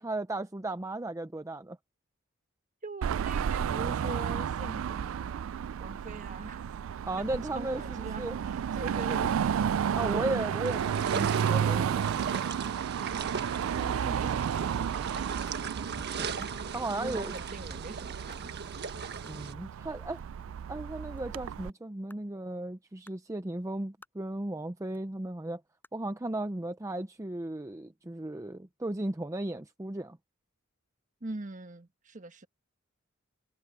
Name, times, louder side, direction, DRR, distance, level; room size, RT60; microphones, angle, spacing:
voice 1, 0.0-1.8 7.0-8.4 9.9-12.4 16.2-16.4 16.7-17.3 19.2-20.2 20.7-25.6 25.9-30.2, right 2 dB, 15° right, 0.6 m, -35 dB
voice 2, 2.8-5.5 5.8-6.6 7.5-9.3 13.0-15.2 16.9-18.5 31.2-32.5, right 2 dB, 40° right, 1.3 m, -42 dB
Car passing by / Traffic noise roadway noise / Engine, 3.0-21.7, right 8 dB, 70° right, 0.3 m, -32 dB
sound 1, 10.6-19.5, right 5 dB, 55° right, 1.5 m, -39 dB
sound 2, 20.2-28.0, left 1 dB, 10° left, 5.5 m, -65 dB
head